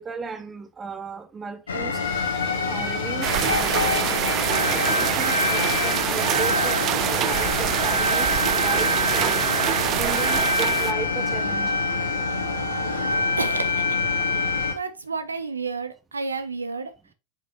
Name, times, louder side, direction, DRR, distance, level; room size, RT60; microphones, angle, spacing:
voice 1, 0.0-2.0 2.7-12.0, right 5 dB, 20° right, 0.9 m, -36 dB
sound 1, 1.7-14.7, left 2 dB, 70° left, 1.4 m, -25 dB
sound 2, 2.0-10.1, left 5 dB, 35° left, 2.0 m, -41 dB
sound 3, 3.2-10.9, right 13 dB, 35° right, 0.3 m, -25 dB
voice 2, 13.4-14.0 14.7-16.9, right 4 dB, 75° right, 0.7 m, -30 dB
7.3 x 5.3 x 2.7 m
figure-of-eight pair, 90°, 0 cm